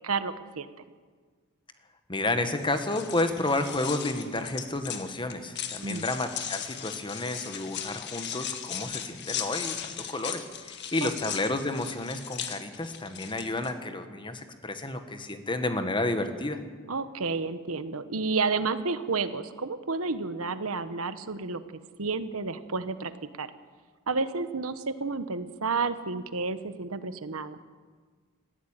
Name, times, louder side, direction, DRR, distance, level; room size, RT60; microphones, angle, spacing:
voice 1, 0.0-0.7 5.8-6.0 11.0-11.1 16.9-21.6 22.0-23.1 23.4-23.5 24.1-27.6, right 4 dB, 80° right, 12 dB, 1.1 m, -31 dB
voice 2, 2.1-16.6, left 2 dB, 20° left, 8 dB, 1.5 m, -31 dB
sound 1, 2.6-13.7, left 9 dB, 55° left, 1.7 m, -38 dB
19.5 x 15.0 x 9.0 m, 1.5 s
head